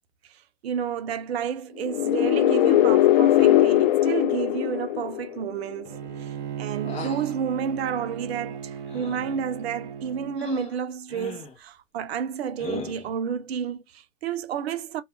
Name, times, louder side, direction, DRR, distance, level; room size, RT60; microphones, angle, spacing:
voice 1, 0.6-15.0, right 8 dB, 55° right, 0.7 m, -30 dB
sound 1, 1.8-5.6, left 14 dB, 40° left, 0.4 m, -20 dB
Bowed string instrument, 5.9-10.4, right 8 dB, 20° right, 0.4 m, -36 dB
sound 2, 6.8-7.4 8.9-9.4 10.4-10.7 11.1-11.6 12.6-13.1, left 4 dB, 15° left, 0.7 m, -37 dB
2.5 x 2.3 x 3.4 m
hypercardioid pair, 120°, 38 cm